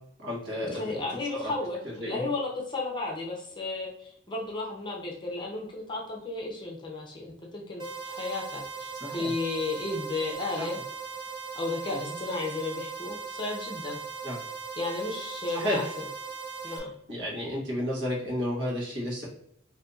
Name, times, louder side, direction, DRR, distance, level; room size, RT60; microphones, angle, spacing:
voice 1, 0.2-1.0 1.4-1.5 1.8-2.2 9.0-9.3 11.9-12.1 14.2-14.4 15.5-15.8 17.1-19.3, left 1 dB, 65° right, -4 dB, 1.3 m, -32 dB
voice 2, 0.7-10.8 11.5-14.0 14.8-16.1 16.6-16.9, left 3 dB, 25° left, -1 dB, 0.6 m, -33 dB
sound 1, 7.8-16.8, right 5 dB, 25° right, 0.5 m, -39 dB
2.7 x 2.7 x 3.5 m, 0.72 s
head